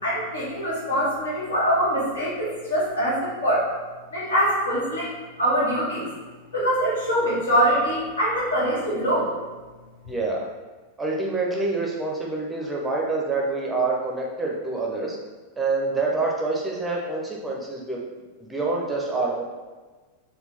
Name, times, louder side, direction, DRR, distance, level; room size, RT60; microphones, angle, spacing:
voice 1, 0.0-3.6 4.1-5.1 5.4-6.1 6.5-9.3, equal, 70° left, -7 dB, 1.4 m, -23 dB
voice 2, 10.1-10.5 11.0-15.2 15.6-18.0 18.5-19.4, right 3 dB, 10° right, -2 dB, 0.6 m, -26 dB
4.2 x 2.2 x 3.3 m, 1.3 s
figure-of-eight pair, 90°, 0 cm